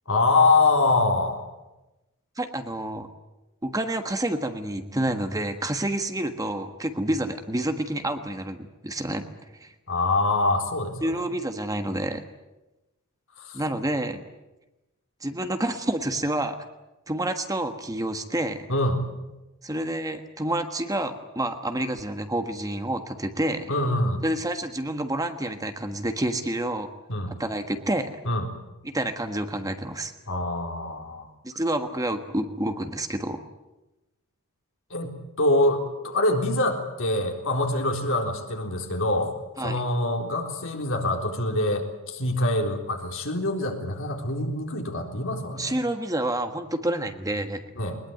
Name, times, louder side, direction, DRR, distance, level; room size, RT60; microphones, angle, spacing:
voice 1, 0.1-1.4 9.9-11.3 13.4-13.6 18.7-19.0 23.7-24.2 27.1-27.3 28.2-28.5 30.3-31.3 34.9-39.3 39.6-45.8 47.7-48.0, left 2 dB, 65° left, 2 dB, 3.9 m, -25 dB
voice 2, 2.4-3.1 3.6-9.3 9.5-9.7 11.0-12.2 13.5-14.2 15.2-16.7 17.1-18.7 19.6-23.7 24.2-26.9 27.3-28.1 28.8-30.1 31.4-33.4 39.6-39.8 45.5-47.6, right 1 dB, 15° right, 7 dB, 1.4 m, -28 dB
21.5 x 21.0 x 9.2 m, 1.0 s
head